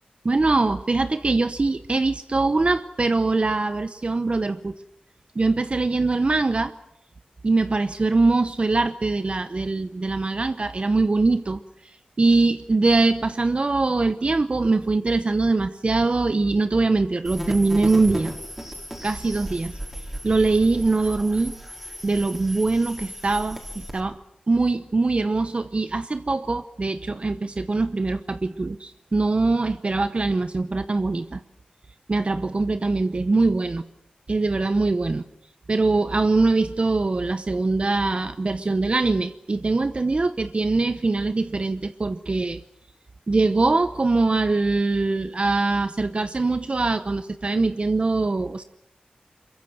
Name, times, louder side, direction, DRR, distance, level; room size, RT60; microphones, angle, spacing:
voice 1, 0.2-4.8 5.4-6.7 7.4-11.6 12.2-18.3 19.0-19.8 20.2-21.6 22.0-24.2 24.5-31.4 32.1-33.8 34.3-35.2 35.7-42.6 43.3-48.6, right 3 dB, 45° right, 11 dB, 0.8 m, -22 dB
sound 1, 17.2-24.0, equal, 10° right, 4.9 m, -35 dB
22.5 x 22.0 x 7.6 m, 0.77 s
cardioid pair, 55°, 3 cm